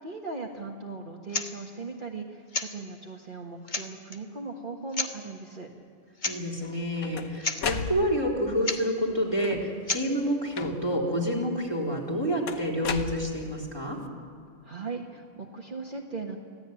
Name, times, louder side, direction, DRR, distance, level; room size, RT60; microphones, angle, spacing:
voice 1, 0.0-5.7 14.6-16.4, right 3 dB, 40° right, 0 dB, 1.6 m, -38 dB
hedge hand clippers, 1.3-1.5 2.5-2.7 3.3-3.4 3.7-4.2 4.9-5.1 6.2-6.4 6.6-6.7 7.1-7.2 7.4-7.6 8.6-8.8 9.9-10.1, left 3 dB, 35° left, 1.3 m, -31 dB
voice 2, 6.2-14.0, equal, 15° left, -2 dB, 4.0 m, -28 dB
sound 1, 6.6-8.4 9.3-9.8 10.5-11.1 12.5-13.7, left 6 dB, 90° left, 1.5 m, -35 dB
25.0 x 16.0 x 9.1 m, 2.3 s
omnidirectional pair, 1.4 m